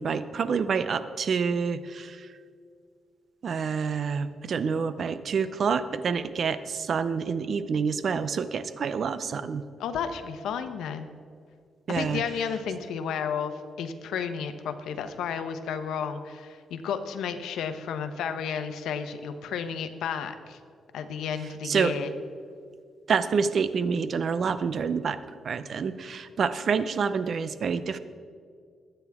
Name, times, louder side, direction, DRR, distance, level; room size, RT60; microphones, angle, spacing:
voice 1, 0.0-2.3 3.4-9.6 11.9-12.2 21.6-21.9 23.1-25.2 25.4-28.0, right 6 dB, 55° right, 13 dB, 0.7 m, -27 dB
voice 2, 9.8-11.1 11.9-20.6 20.9-22.1, left 7 dB, 90° left, 9 dB, 1.0 m, -32 dB
21.0 x 9.1 x 3.6 m, 2.2 s
cardioid pair, 105°, 0 cm